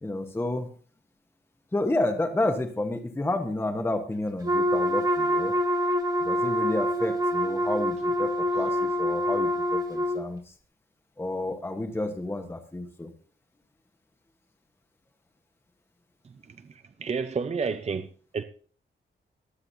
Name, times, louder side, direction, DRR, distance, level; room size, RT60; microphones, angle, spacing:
voice 1, 0.0-0.7 1.7-5.5 6.2-10.5 11.2-13.1, left 2 dB, 10° left, 1.0 m, -30 dB
Wind instrument woodwind instrument, 4.4-10.2, equal, 20° right, 1.3 m, -26 dB
voice 2, 17.0-18.1 18.3-18.4, right 5 dB, 35° right, 0.6 m, -29 dB
23.0 x 7.8 x 2.7 m
wide cardioid pair, 175°, 20 cm